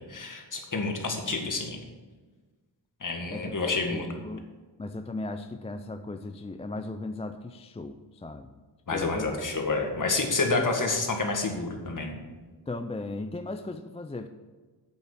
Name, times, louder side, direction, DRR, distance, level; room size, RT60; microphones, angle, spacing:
voice 1, 0.1-1.8 3.0-4.1 8.9-12.2, left 3 dB, 40° left, 3 dB, 1.8 m, -29 dB
voice 2, 3.3-4.5 4.8-8.6 8.9-9.3 10.6-10.7 12.7-14.3, left 2 dB, 15° left, 8 dB, 0.4 m, -37 dB
8.3 x 7.4 x 6.7 m, 1.3 s
wide cardioid pair, 110°, 46 cm